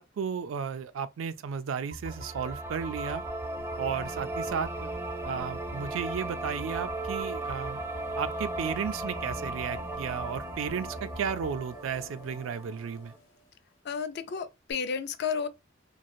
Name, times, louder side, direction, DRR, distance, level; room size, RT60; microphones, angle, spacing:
voice 1, 0.0-3.2 3.8-4.9 5.2-7.8 8.2-13.1, right 7 dB, 80° right, 0.4 m, -34 dB
sound 1, 1.9-11.6, right 1 dB, 40° left, 0.8 m, -43 dB
sound 2, 2.1-13.2, right 2 dB, 10° right, 0.4 m, -37 dB
sound 3, 2.7-13.5 14.7-14.8, equal, 90° left, 1.0 m, -47 dB
voice 2, 13.8-15.5, left 6 dB, 60° left, 0.4 m, -32 dB
3.1 x 2.4 x 2.6 m
head